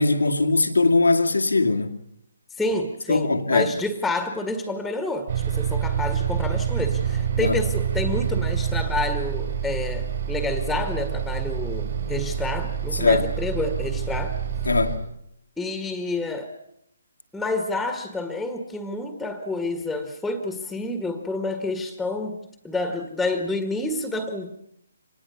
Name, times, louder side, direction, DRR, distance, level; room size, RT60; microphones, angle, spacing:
voice 1, 0.0-1.9 3.1-3.7 7.4-7.6 12.9-13.3 14.7-15.0, left 3 dB, 85° left, 2.2 m, -20 dB
voice 2, 2.6-14.4 15.6-16.5 17.3-22.4 22.6-24.5, left 2 dB, ahead, 1.8 m, -29 dB
Bus, 5.3-15.0, right 8 dB, 55° right, 7.2 m, -27 dB
25.0 x 20.0 x 7.1 m
figure-of-eight pair, 145°, 0 cm